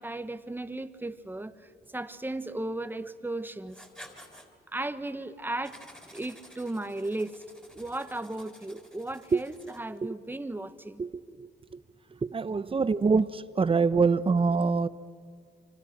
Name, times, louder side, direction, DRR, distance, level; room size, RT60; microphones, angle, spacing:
voice 1, 0.0-1.5 1.9-3.8 4.7-5.8 6.1-7.4 7.7-11.0, right 2 dB, 10° right, 11 dB, 1.2 m, -35 dB
Writing, 3.7-4.5 5.6-10.0, equal, 5° left, 3.9 m, -52 dB
voice 2, 11.0-11.5 12.2-14.9, right 4 dB, 25° right, 14 dB, 0.9 m, -25 dB
27.0 x 25.5 x 6.0 m, 2.2 s
cardioid pair, 90°, 20 cm